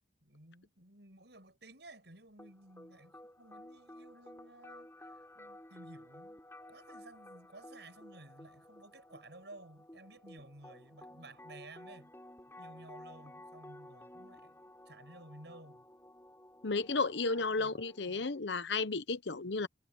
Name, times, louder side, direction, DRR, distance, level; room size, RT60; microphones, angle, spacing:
voice 1, 0.2-6.4 6.7-12.1 12.6-15.9 17.3-17.8 18.1-18.3, right 2 dB, 70° right, 7.2 m, -55 dB
sound 1, 2.4-18.4, left 1 dB, 15° left, 6.8 m, -54 dB
voice 2, 16.6-19.7, left 3 dB, 75° left, 1.0 m, -33 dB
head